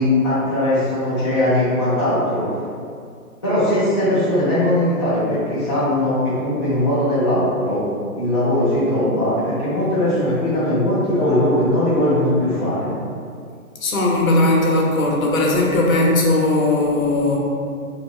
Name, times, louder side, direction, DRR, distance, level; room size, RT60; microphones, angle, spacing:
voice 1, 0.0-2.4 3.4-7.8 8.2-12.9, left 1 dB, 20° left, -14 dB, 0.4 m, -19 dB
voice 2, 13.8-17.4, left 2 dB, 65° left, -2 dB, 0.7 m, -18 dB
2.3 x 2.0 x 3.5 m, 2.3 s
figure-of-eight pair, 145°, 45 cm